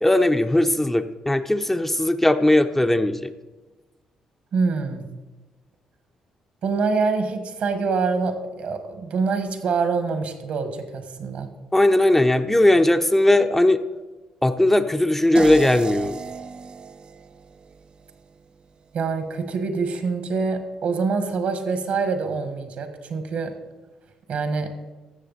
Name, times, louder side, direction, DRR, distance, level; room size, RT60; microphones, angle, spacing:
voice 1, 0.0-3.3 11.7-13.8 14.4-16.2, left 1 dB, 10° left, 7 dB, 0.6 m, -18 dB
voice 2, 4.5-5.0 6.6-11.5 18.9-23.5 24.3-24.7, right 4 dB, 65° right, 8 dB, 1.3 m, -25 dB
sound 1, 15.3-18.4, right 5 dB, 45° right, 0.4 m, -35 dB
14.0 x 6.8 x 4.0 m, 1.2 s
supercardioid pair, 65°, 2 cm